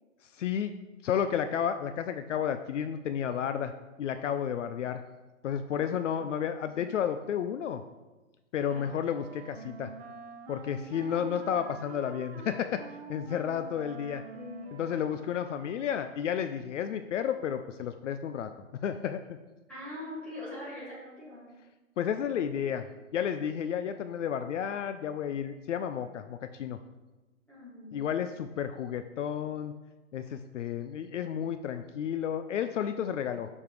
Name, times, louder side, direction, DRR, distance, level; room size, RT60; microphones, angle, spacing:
voice 1, 0.3-0.7 1.0-3.7 4.0-5.0 5.4-7.8 8.5-9.9 10.5-12.8 13.1-14.2 14.7-18.5 18.8-19.4 22.0-22.8 23.1-26.8 27.9-29.7 30.1-33.5, left 8 dB, 65° left, 9 dB, 0.5 m, -32 dB
voice 2, 5.7-6.3 8.7-8.9 14.3-15.2 19.7-21.6 27.5-28.1, left 1 dB, 5° left, -11 dB, 2.0 m, -44 dB
Wind instrument woodwind instrument, 8.6-16.1, right 5 dB, 50° right, 0.7 m, -47 dB
6.8 x 5.4 x 3.1 m, 1.1 s
hypercardioid pair, 160°, 39 cm